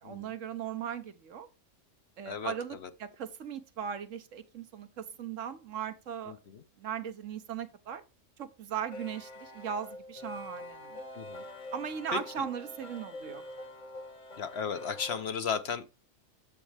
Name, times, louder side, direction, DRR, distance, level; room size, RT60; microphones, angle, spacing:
voice 1, 0.0-1.5 2.2-6.4 6.8-8.0 8.4-11.0 11.7-13.4, right 8 dB, 75° right, 1.3 m, -38 dB
voice 2, 6.3-6.6 11.1-11.4 12.1-12.2 14.4-15.9, left 6 dB, 60° left, 0.9 m, -35 dB
sound 1, 8.8-15.3, left 2 dB, 40° left, 1.2 m, -45 dB
8.9 x 7.4 x 3.4 m
omnidirectional pair, 1.3 m